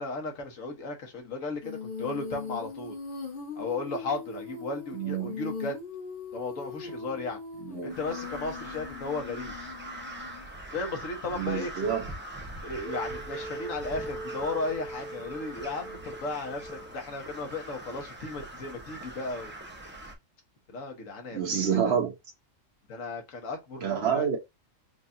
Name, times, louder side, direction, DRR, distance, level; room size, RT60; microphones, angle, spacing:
voice 1, 0.0-2.9 3.6-5.8 6.3-7.4 7.8-9.5 10.7-11.7 12.6-19.5 20.7-21.7 22.9-24.3, left 3 dB, 75° left, 1.5 m, -35 dB
Female singing, 1.6-10.5 12.7-16.9, left 2 dB, 40° left, 1.3 m, -40 dB
voice 2, 4.9-5.3 7.6-8.0 11.3-12.1 21.3-22.1 23.8-24.4, right 7 dB, 55° right, 1.1 m, -28 dB
Crow, 7.9-20.1, right 1 dB, 10° right, 0.6 m, -42 dB
4.7 x 2.4 x 2.6 m
omnidirectional pair, 1.4 m